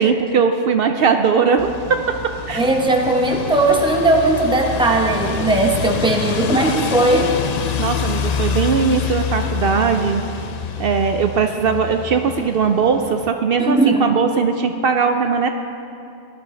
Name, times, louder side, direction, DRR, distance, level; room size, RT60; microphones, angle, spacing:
voice 1, 0.0-1.7 2.5-2.6 7.8-10.2 10.8-15.5, right 6 dB, 65° right, 6 dB, 0.7 m, -19 dB
sound 1, 1.6-13.3, left 6 dB, 55° left, 0.5 m, -27 dB
voice 2, 2.5-7.4 13.6-14.1, right 2 dB, 5° right, 2 dB, 0.8 m, -17 dB
16.5 x 11.5 x 3.2 m, 2.6 s
omnidirectional pair, 1.1 m